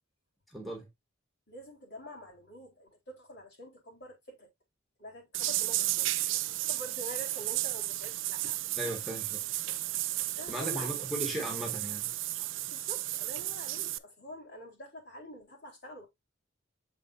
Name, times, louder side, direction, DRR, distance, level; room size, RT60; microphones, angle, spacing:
voice 1, 0.5-0.9 8.8-9.5 10.5-12.1, right 1 dB, ahead, 1.7 m, -37 dB
voice 2, 1.5-4.5 5.0-8.8 10.3-11.5 12.7-16.1, equal, 55° left, 3.9 m, -47 dB
sound 1, 5.3-14.0, right 16 dB, 70° right, 0.5 m, -33 dB
7.3 x 5.1 x 2.6 m
head